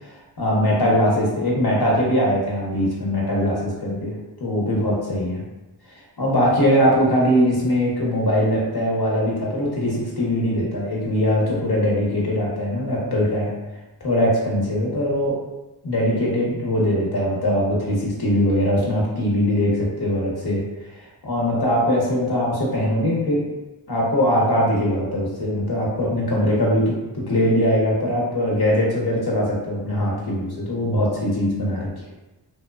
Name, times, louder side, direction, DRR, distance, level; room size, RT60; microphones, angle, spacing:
voice 1, 0.0-4.1 4.4-5.4 6.2-13.5 14.0-15.4 15.8-23.5 23.9-32.1, equal, 55° left, -4 dB, 0.9 m, -21 dB
2.9 x 2.1 x 2.2 m, 1.0 s
wide cardioid pair, 70°, 45 cm